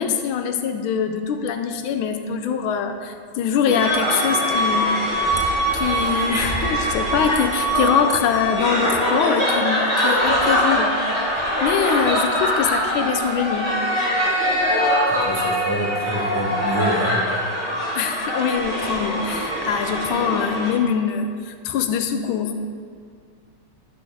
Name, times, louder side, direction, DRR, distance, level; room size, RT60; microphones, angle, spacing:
voice 1, 0.0-5.0 5.7-11.0 11.6-13.7 18.0-22.6, left 7 dB, 85° left, 7 dB, 1.4 m, -23 dB
sound 1, 3.7-20.7, equal, 15° left, 2.3 m, -22 dB
voice 2, 15.1-17.2, equal, 20° right, -4 dB, 0.8 m, -26 dB
11.5 x 6.1 x 3.4 m, 2.1 s
omnidirectional pair, 2.2 m